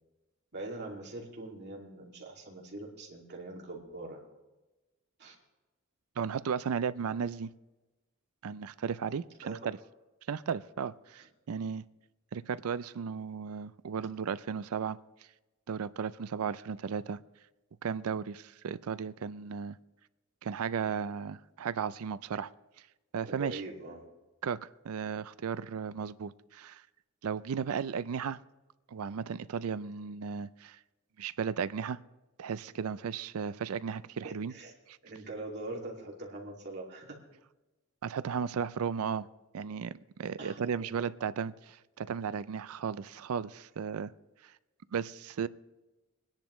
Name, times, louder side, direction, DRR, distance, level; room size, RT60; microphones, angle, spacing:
voice 1, 0.5-4.2 5.2-5.4 9.4-9.7 11.2-11.3 23.2-24.1 34.2-34.7 35.0-37.2 40.4-41.1, right 2 dB, 50° right, -1 dB, 2.4 m, -43 dB
voice 2, 6.2-7.5 8.4-9.8 10.3-11.8 12.3-15.0 15.7-17.2 17.8-19.8 20.4-22.5 23.1-23.6 24.4-26.8 27.2-28.4 28.9-30.8 31.2-32.0 32.4-34.5 34.9-35.0 38.0-39.3 39.5-44.1 44.4-44.5 44.9-45.5, right 6 dB, 90° right, 16 dB, 0.4 m, -35 dB
22.0 x 10.5 x 3.1 m, 1.1 s
head